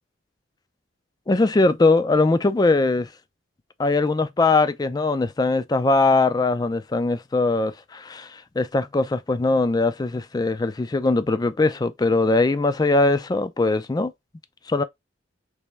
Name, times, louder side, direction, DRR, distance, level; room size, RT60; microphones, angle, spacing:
voice 1, 1.3-3.1 3.8-14.1 14.7-14.8, left 3 dB, 20° left, 0.3 m, -21 dB
3.4 x 3.0 x 3.0 m
head